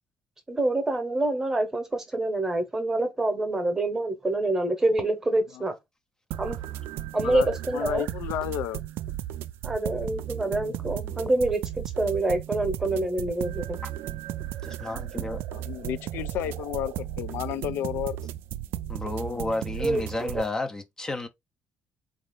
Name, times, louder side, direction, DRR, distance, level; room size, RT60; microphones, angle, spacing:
voice 1, 0.5-5.7 6.4-6.6 7.1-8.0 9.6-13.8 19.8-20.3, right 2 dB, 10° right, 0.9 m, -26 dB
sound 1, 6.3-20.4, right 13 dB, 80° right, 0.3 m, -35 dB
voice 2, 7.2-8.8 15.5-18.2, left 12 dB, 85° left, 0.3 m, -32 dB
voice 3, 10.6-11.4 13.8-13.9 14.6-15.4 18.9-21.3, left 2 dB, 15° left, 0.4 m, -33 dB
4.1 x 2.4 x 3.5 m
cardioid pair, 180°, 4 cm